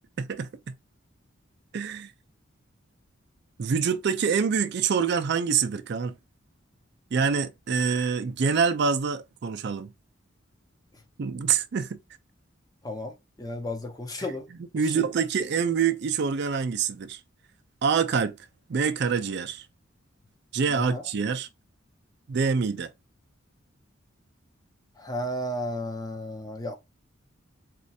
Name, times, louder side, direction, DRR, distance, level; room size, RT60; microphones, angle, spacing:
voice 1, 0.2-0.7 1.7-2.1 3.6-6.1 7.1-9.9 11.2-12.0 14.5-17.2 17.8-18.4 18.7-19.7 20.5-21.5 22.3-22.9, right 6 dB, 55° right, 0.4 m, -26 dB
voice 2, 12.8-14.5 14.9-15.1 20.7-21.0 25.0-26.7, left 1 dB, 20° left, 0.5 m, -33 dB
4.2 x 2.4 x 2.6 m
head